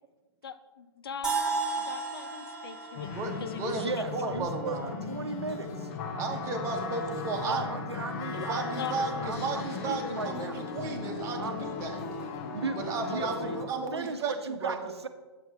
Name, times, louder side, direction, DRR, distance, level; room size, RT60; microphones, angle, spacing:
voice 1, 0.4-3.1 3.4-3.7 8.8-8.9, left 8 dB, 60° left, 12 dB, 0.6 m, -41 dB
sound 1, 1.2-5.1, right 4 dB, 5° right, 1.5 m, -34 dB
sound 2, 3.0-13.7, left 4 dB, 35° left, 0.9 m, -37 dB
voice 2, 3.1-3.8 4.1-4.9 6.1-7.6 8.3-12.0 12.9-14.3 14.6-14.7, right 4 dB, 20° right, 2 dB, 1.2 m, -34 dB
voice 3, 3.7-5.9 7.4-10.6 11.4-11.6 12.5-13.6 13.9-15.1, right 4 dB, 75° right, 8 dB, 0.9 m, -36 dB
8.9 x 7.8 x 3.3 m, 1.2 s
figure-of-eight pair, 120°, 14 cm